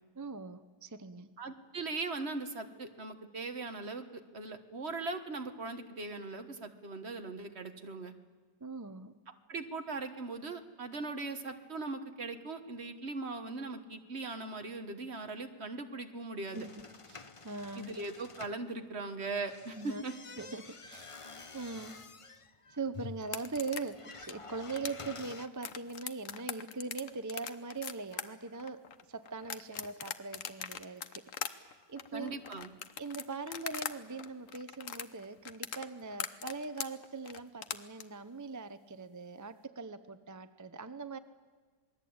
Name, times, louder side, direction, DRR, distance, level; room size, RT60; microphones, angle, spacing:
voice 1, 0.1-1.3 8.6-9.1 16.5-16.8 17.1-17.9 19.8-20.0 20.4-21.1 21.5-22.0 22.7-32.4 33.0-41.2, right 4 dB, 20° right, 11 dB, 0.4 m, -41 dB
voice 2, 1.4-8.1 9.5-16.7 17.8-20.1 32.1-32.7, right 3 dB, 40° right, 7 dB, 1.6 m, -40 dB
sound 1, 16.5-18.6 19.4-25.5, left 3 dB, 30° left, 0.6 m, -49 dB
sound 2, 23.2-33.9 34.2-38.0, left 8 dB, 55° left, 1.3 m, -41 dB
27.5 x 20.5 x 8.7 m, 1.4 s
omnidirectional pair, 1.8 m